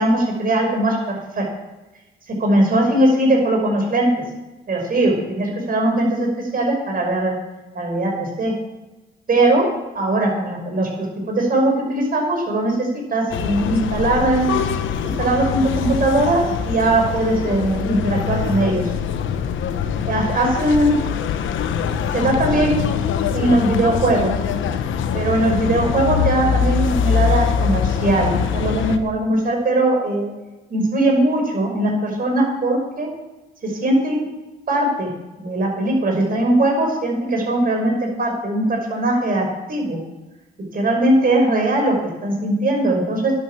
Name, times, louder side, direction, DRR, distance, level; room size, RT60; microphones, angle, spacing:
voice 1, 0.0-1.4 2.4-4.1 4.7-7.3 7.7-8.5 9.3-9.7 9.9-14.5 15.2-18.9 20.1-21.0 22.1-23.0 23.3-24.3 25.1-30.3 30.7-33.1 33.6-34.3 34.7-35.1 35.4-40.0 40.7-43.3, right 1 dB, 45° right, 2 dB, 5.6 m, -20 dB
sound 1, 13.3-29.0, left 7 dB, 80° left, 1.0 m, -23 dB
11.0 x 9.8 x 7.3 m, 1.1 s
cardioid pair, 90°, 20 cm